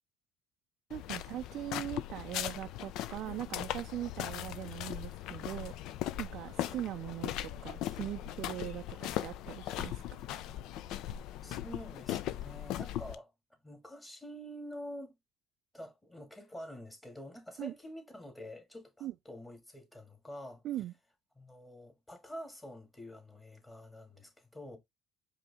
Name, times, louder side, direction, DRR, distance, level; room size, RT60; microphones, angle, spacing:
sound 1, 0.9-13.1, left 12 dB, 70° left, 0.4 m, -39 dB
voice 1, 0.9-5.7 6.2-10.2 17.6-17.7 19.0-19.1 20.6-20.9, right 13 dB, 65° right, 0.3 m, -41 dB
voice 2, 11.4-13.3 13.6-15.1 15.7-20.6 21.4-24.8, equal, 15° left, 1.9 m, -47 dB
4.9 x 2.7 x 3.4 m
supercardioid pair, 85°, 0 cm